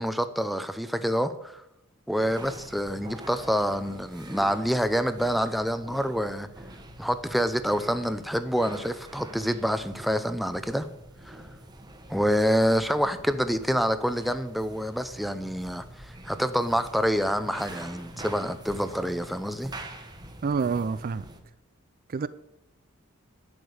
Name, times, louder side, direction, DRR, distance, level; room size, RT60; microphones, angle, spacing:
voice 1, 0.0-1.6 2.1-6.5 7.0-10.9 11.2-11.4 12.1-19.7, equal, ahead, 0.6 m, -27 dB
sound 1, 2.1-21.4, right 1 dB, 20° right, 1.2 m, -45 dB
voice 2, 20.4-21.2 22.1-22.3, right 5 dB, 45° right, 0.4 m, -27 dB
11.0 x 6.8 x 7.9 m
head